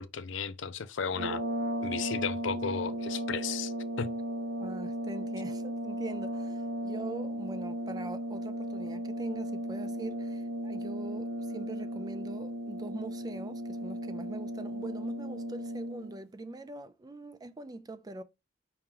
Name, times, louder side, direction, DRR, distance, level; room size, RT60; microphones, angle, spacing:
voice 1, 0.0-1.4 1.8-4.1, left 6 dB, 70° left, 0.5 m, -34 dB
sound 1, 1.1-16.2, right 1 dB, 60° right, 0.7 m, -36 dB
voice 2, 4.6-18.2, right 2 dB, 20° right, 0.4 m, -43 dB
4.8 x 2.9 x 3.6 m
head